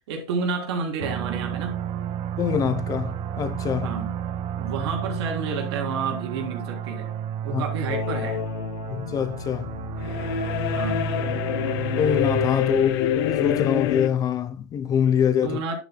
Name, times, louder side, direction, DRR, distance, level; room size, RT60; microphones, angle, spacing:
voice 1, 0.1-1.8 3.8-4.1 4.6-7.1 7.4-8.4 10.8-11.0 12.7-12.8 15.4-15.8, right 4 dB, 75° right, 3.4 m, -30 dB
sound 1, 1.0-12.5, right 9 dB, 40° right, 1.0 m, -31 dB
voice 2, 2.4-3.9 7.5-7.6 8.9-9.7 12.0-15.6, left 8 dB, 25° left, 0.9 m, -24 dB
sound 2, 7.9-14.1, left 10 dB, 65° left, 1.1 m, -27 dB
10.5 x 8.1 x 2.3 m
supercardioid pair, 135°, 14 cm